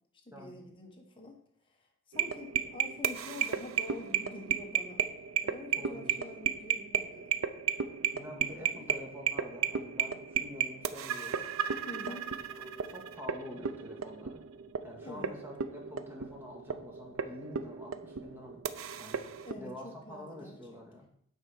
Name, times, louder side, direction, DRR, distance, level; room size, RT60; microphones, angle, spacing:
voice 1, 0.2-1.4 1.7-1.8 2.1-5.0 5.4-7.4 8.5-8.9 11.9-12.3 15.0-15.4 19.4-20.8, left 2 dB, 25° left, 1 dB, 1.4 m, -47 dB
sound 1, 2.1-19.5, right 8 dB, 80° right, 0.6 m, -34 dB
voice 2, 5.8-6.2 8.1-11.4 12.1-12.2 12.5-14.4 14.8-18.6 19.0-19.3 19.6-21.1, left 1 dB, 10° right, -1 dB, 1.8 m, -47 dB
9.0 x 4.4 x 5.7 m, 0.64 s
head